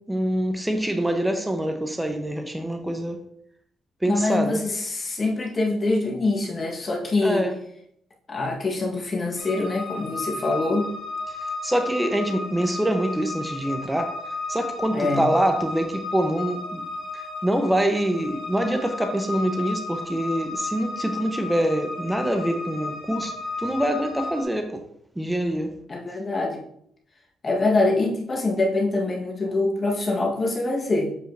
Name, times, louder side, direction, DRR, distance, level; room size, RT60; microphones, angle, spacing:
voice 1, 0.1-3.2 4.0-4.6 7.2-7.6 11.3-11.4 11.6-14.1 14.5-16.8 17.1-24.8 25.2-25.7, right 1 dB, 5° right, 5 dB, 0.8 m, -25 dB
voice 2, 4.0-7.4 8.3-10.9 14.9-15.3 25.9-26.6 27.4-31.1, left 2 dB, 35° left, -1 dB, 1.3 m, -24 dB
sound 1, 9.4-24.4, left 3 dB, 60° left, 1.9 m, -34 dB
7.5 x 4.9 x 2.6 m, 0.70 s
cardioid pair, 90°, 0 cm